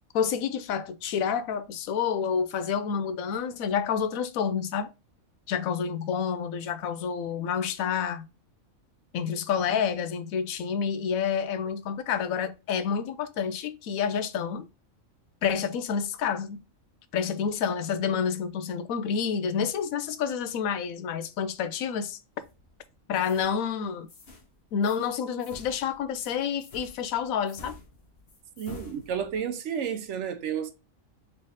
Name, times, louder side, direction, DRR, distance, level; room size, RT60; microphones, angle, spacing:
voice 1, 0.1-4.9 5.5-8.3 9.1-14.7 15.4-16.6 17.1-22.2 23.1-24.1 24.7-27.8, left 7 dB, 90° left, 1.0 m, -29 dB
sound 1, 22.4-22.8 23.2-23.6 24.1-24.5 24.8-25.1 25.4-29.5, left 3 dB, 50° left, 1.1 m, -49 dB
voice 2, 28.6-30.7, right 8 dB, 70° right, 0.9 m, -31 dB
3.5 x 3.3 x 3.9 m
omnidirectional pair, 1.4 m